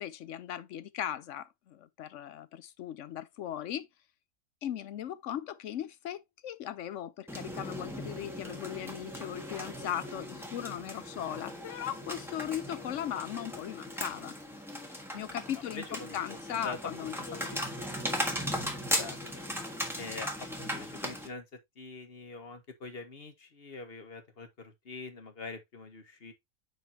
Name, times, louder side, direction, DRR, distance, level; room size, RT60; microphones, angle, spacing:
voice 1, 0.0-3.9 4.6-14.4 15.1-17.1 17.5-17.6, left 10 dB, 65° left, 0.9 m, -38 dB
sound 1, 7.3-21.3, equal, ahead, 1.3 m, -38 dB
voice 2, 15.7-17.7 19.0-19.2 20.0-20.3 20.6-21.4 21.8-26.3, left 3 dB, 45° left, 1.3 m, -44 dB
9.4 x 3.9 x 2.8 m
omnidirectional pair, 1.6 m